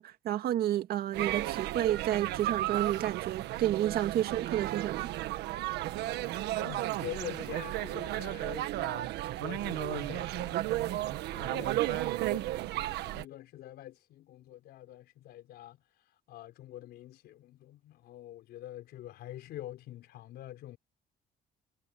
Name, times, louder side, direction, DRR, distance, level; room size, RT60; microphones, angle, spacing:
voice 1, 0.0-5.1, right 12 dB, 65° right, 1.9 m, -30 dB
sound 1, 1.1-13.2, right 15 dB, 80° right, 1.5 m, -34 dB
voice 2, 6.6-9.1 9.4-15.8 16.3-20.8, left 13 dB, 75° left, 4.1 m, -46 dB
cardioid pair, 110°, 17 cm